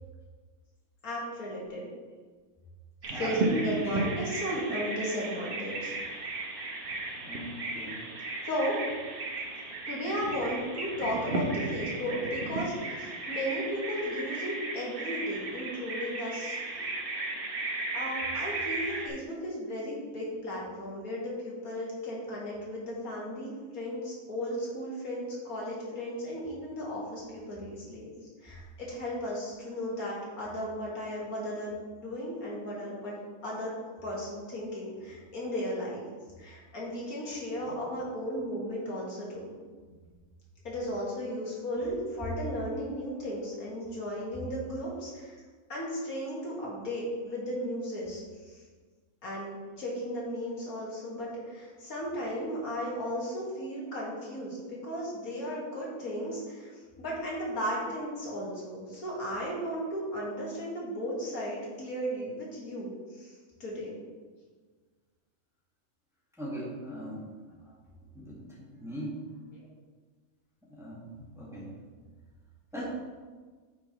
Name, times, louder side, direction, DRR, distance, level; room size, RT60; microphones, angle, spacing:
voice 1, 1.0-1.9 3.1-5.9 8.4-8.8 9.9-16.8 17.9-28.1 28.4-33.2 33.4-33.8 34.0-36.0 36.4-39.5 40.6-45.4 45.7-48.2 49.2-56.7 57.0-63.3 63.6-64.0 67.7-67.8 69.5-69.7 72.8-72.9, equal, 85° left, -5 dB, 2.3 m, -35 dB
Bird vocalization bird call bird song, 3.0-19.1, right 2 dB, 45° right, 1.0 m, -35 dB
voice 2, 3.1-4.1 7.1-8.0 37.6-37.7 39.8-40.0 66.4-67.3 68.1-69.2 70.7-71.7 72.7-72.8, right 1 dB, ahead, -7 dB, 1.8 m, -39 dB
9.5 x 5.3 x 3.1 m, 1.5 s
omnidirectional pair, 1.5 m